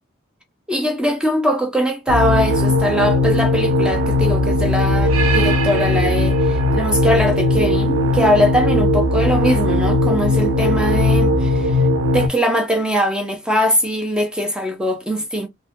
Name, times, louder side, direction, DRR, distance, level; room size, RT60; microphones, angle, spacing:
voice 1, 0.7-11.8 12.1-15.5, equal, 5° right, 0.5 m, -21 dB
sound 1, 2.1-12.3, left 1 dB, 80° right, 0.6 m, -18 dB
3.3 x 2.1 x 2.8 m
head